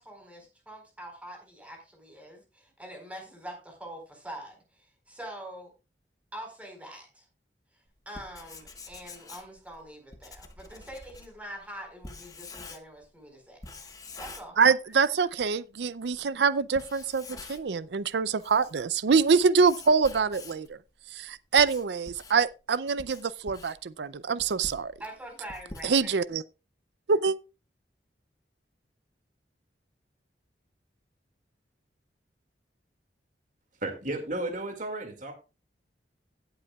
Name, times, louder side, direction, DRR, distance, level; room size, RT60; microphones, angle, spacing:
voice 1, 0.0-5.7 6.3-7.3 8.1-13.6 14.2-14.6 15.2-15.3 25.0-26.2, right 1 dB, 10° right, 4.4 m, -44 dB
Writing, 8.0-13.1 13.6-15.1 15.4-15.5 16.1-16.2 16.6-17.8 18.2-20.7 21.3-26.3, left 3 dB, 20° left, 1.3 m, -46 dB
voice 2, 14.6-20.7 21.1-24.9 25.8-26.4 27.1-27.4, right 5 dB, 70° right, 0.5 m, -25 dB
voice 3, 33.8-35.3, right 2 dB, 50° right, 2.1 m, -33 dB
17.0 x 8.1 x 2.3 m
head